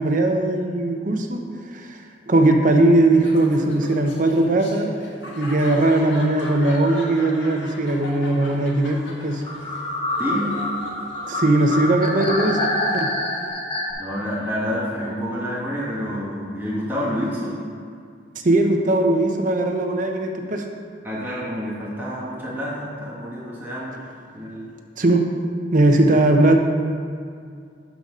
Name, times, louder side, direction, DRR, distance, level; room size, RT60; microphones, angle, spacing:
voice 1, 0.0-1.4 1.7-4.9 5.4-9.4 11.3-12.6 12.9-13.1 18.4-20.7 25.0-25.2 25.7-26.6, right 2 dB, 45° right, 3 dB, 0.8 m, -19 dB
Laughter, 3.1-13.5, left 1 dB, 85° left, 1.7 m, -38 dB
sound 1, 9.5-13.9, left 1 dB, 30° left, 1.1 m, -26 dB
voice 2, 10.2-10.6 14.0-17.6 21.0-24.0 24.3-24.6, equal, 10° right, -7 dB, 1.2 m, -28 dB
11.0 x 4.0 x 5.4 m, 2.2 s
head